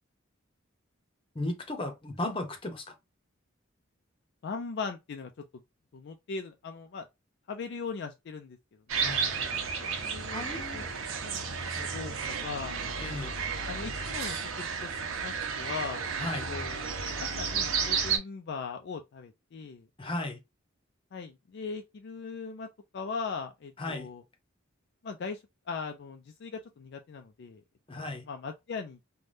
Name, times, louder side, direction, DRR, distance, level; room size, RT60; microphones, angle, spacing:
voice 1, 1.3-2.9 9.0-9.7 10.3-10.9 13.0-13.3 16.2-16.5 20.0-20.4 23.8-24.1 27.9-28.2, left 2 dB, 25° left, 0.8 m, -35 dB
voice 2, 4.4-5.3 5.9-7.1 7.5-8.6 8.9-9.2 9.8-10.4 10.7-10.8 11.2-11.5 11.8-12.9 13.7-16.1 16.5-16.9 17.2-19.9 21.1-22.7 22.9-24.2 25.0-25.4 25.7-27.6 27.9-29.0, left 5 dB, 55° left, 0.4 m, -39 dB
sound 1, 8.9-18.2, right 5 dB, 80° right, 0.7 m, -32 dB
3.3 x 2.2 x 2.6 m
head